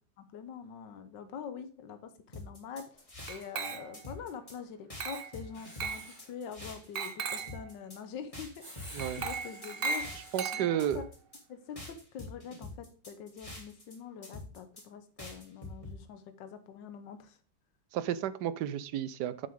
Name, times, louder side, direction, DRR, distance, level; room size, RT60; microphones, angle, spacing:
voice 1, 0.2-2.0 2.3-10.1 10.5-10.7 10.9-11.0 11.5-17.4, left 7 dB, 85° left, 9 dB, 1.6 m, -45 dB
sound 1, 2.3-3.7 3.9-4.6 4.9-7.1 7.4-8.0 8.3-10.5 10.8-11.4 11.8-13.9 14.2-14.8 15.2-15.9, left 2 dB, 20° left, 2.6 m, -46 dB
Glass, 3.3-4.1 5.0-5.4 5.8-6.1 7.0-7.6 9.0-11.0, right 5 dB, 45° right, 0.8 m, -37 dB
Writing, 5.5-6.3 8.6-10.5, right 1 dB, 15° right, 2.2 m, -50 dB
voice 2, 10.3-11.0 17.9-19.5, right 11 dB, 75° right, 15 dB, 1.2 m, -32 dB
7.6 x 7.4 x 3.6 m, 0.41 s
omnidirectional pair, 1.9 m